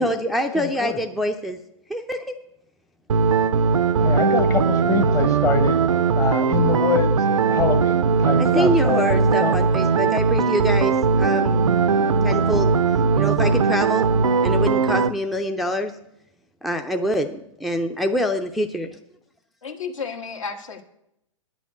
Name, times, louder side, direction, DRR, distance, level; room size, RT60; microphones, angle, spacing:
voice 1, 0.0-1.6 1.9-2.3 8.4-11.7 12.2-12.7 13.1-14.1 14.4-15.9 16.6-19.0, equal, ahead, 5 dB, 0.4 m, -25 dB
voice 2, 0.5-1.0 4.0-5.8 6.1-7.2 7.5-9.1 9.4-9.6, left 6 dB, 20° left, 8 dB, 0.9 m, -25 dB
sound 1, 3.1-15.1, right 5 dB, 70° right, 0.5 m, -19 dB
voice 3, 19.6-20.8, left 5 dB, 70° left, 5 dB, 1.5 m, -32 dB
9.4 x 6.2 x 8.1 m, 0.80 s
figure-of-eight pair, 110°, 17 cm